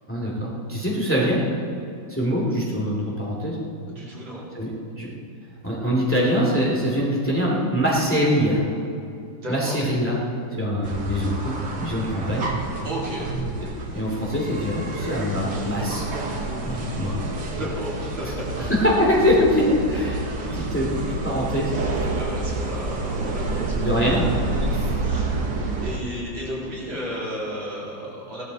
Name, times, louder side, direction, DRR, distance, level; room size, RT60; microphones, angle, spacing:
voice 1, 0.1-1.4 2.1-3.6 4.5-4.7 5.0-5.1 5.6-8.6 9.5-10.1 10.6-12.5 13.9-16.0 16.6-17.4 18.6-20.2 20.5-21.7 22.0-22.1 23.8-24.3, equal, 5° left, -4 dB, 2.3 m, -23 dB
voice 2, 3.9-4.5 9.4-9.8 12.8-13.3 17.6-18.7 20.4-20.7 22.1-23.9 24.6-25.3 25.8-28.4, equal, 80° right, -6 dB, 4.0 m, -33 dB
sound 1, 10.8-26.0, right 2 dB, 65° right, 1.9 m, -29 dB
16.5 x 12.5 x 4.1 m, 2.6 s
omnidirectional pair, 2.1 m